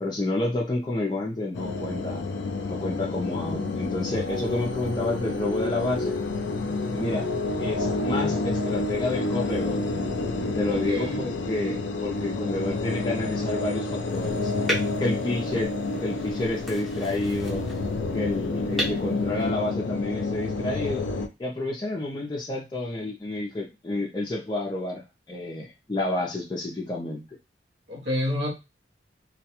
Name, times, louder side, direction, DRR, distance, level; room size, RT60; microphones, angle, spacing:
voice 1, 0.0-2.2 2.7-6.2 6.9-7.3 7.6-9.8 10.5-14.5 15.0-17.7 18.1-21.1 21.4-27.2, left 2 dB, 25° left, -2 dB, 0.4 m, -30 dB
Meditate Calm Scape, 1.5-21.3, left 3 dB, 90° left, 0.4 m, -29 dB
voice 2, 10.7-11.3 27.9-28.5, left 1 dB, 70° right, -3 dB, 0.8 m, -29 dB
sound 1, 14.1-19.9, equal, ahead, 0.7 m, -36 dB
2.3 x 2.1 x 2.8 m, 0.25 s
head